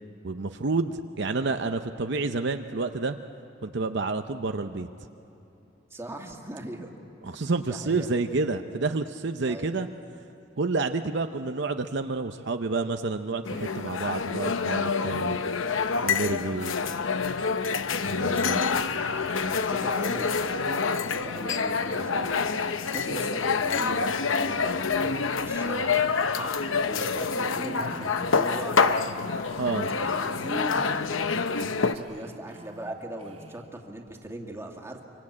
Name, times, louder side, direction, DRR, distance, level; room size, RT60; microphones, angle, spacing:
voice 1, 0.2-3.2 3.6-4.9 7.2-9.9 10.6-15.4 16.0-16.7 18.0-18.6 29.6-29.9, right 3 dB, 60° right, 7 dB, 0.7 m, -29 dB
voice 2, 5.9-7.0 7.3-8.1 9.4-9.7 18.2-20.8 21.0-22.4 22.9-26.5 26.9-29.1 29.7-31.0 31.6-35.0, right 1 dB, 15° right, 1 dB, 2.1 m, -40 dB
sound 1, 13.5-32.0, left 5 dB, 90° left, 0.9 m, -27 dB
Female speech woman speaking, 27.4-29.6 29.9-30.6 31.6-33.7, right 2 dB, 35° right, 2.0 m, -49 dB
26.5 x 24.5 x 8.6 m, 2.9 s
head